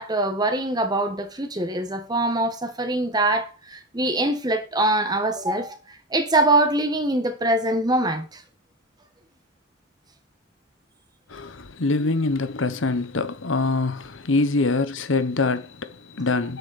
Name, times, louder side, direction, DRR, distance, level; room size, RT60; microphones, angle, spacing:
voice 1, 0.0-5.8 6.1-8.4, right 2 dB, 20° right, 1.3 m, -23 dB
voice 2, 11.3-16.6, left 3 dB, 80° left, 1.0 m, -24 dB
9.6 x 8.0 x 4.1 m
head